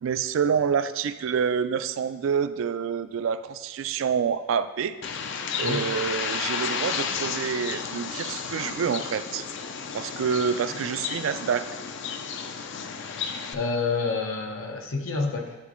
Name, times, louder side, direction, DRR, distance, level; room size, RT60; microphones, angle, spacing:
voice 1, 0.0-5.0 5.2-5.3 5.6-9.5 9.9-11.7, right 7 dB, 75° right, 12 dB, 0.3 m, -27 dB
Bird, 5.0-13.5, left 6 dB, 60° left, 0.4 m, -32 dB
voice 2, 13.5-15.5, left 4 dB, 85° left, 3 dB, 0.8 m, -28 dB
11.0 x 4.1 x 3.0 m, 1.2 s
head